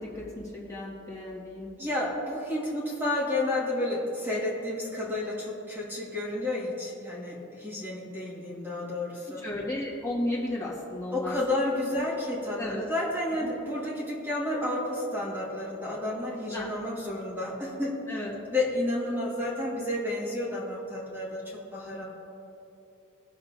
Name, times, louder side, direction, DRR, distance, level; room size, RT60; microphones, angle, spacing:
voice 1, 0.0-1.7 9.4-11.4 12.6-12.8 13.4-13.5 16.5-16.7 18.1-18.3, left 1 dB, 15° left, -6 dB, 1.8 m, -34 dB
voice 2, 1.8-9.4 11.1-18.2 18.5-22.0, left 1 dB, 10° right, -5 dB, 1.8 m, -31 dB
20.0 x 6.9 x 2.7 m, 2.9 s
head